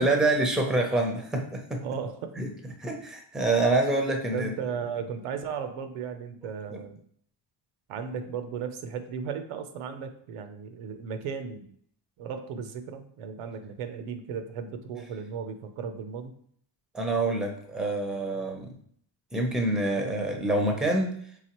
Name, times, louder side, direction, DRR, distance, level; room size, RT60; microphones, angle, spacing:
voice 1, 0.0-1.8 2.4-2.5 2.8-4.5 6.7-6.8 16.9-18.7 19.3-21.1, right 2 dB, ahead, 3 dB, 0.6 m, -26 dB
voice 2, 1.8-2.3 4.3-7.0 7.9-11.7 12.2-16.3, right 6 dB, 90° right, 7 dB, 0.7 m, -35 dB
4.8 x 3.5 x 3.0 m, 0.63 s
cardioid pair, 125°, 49 cm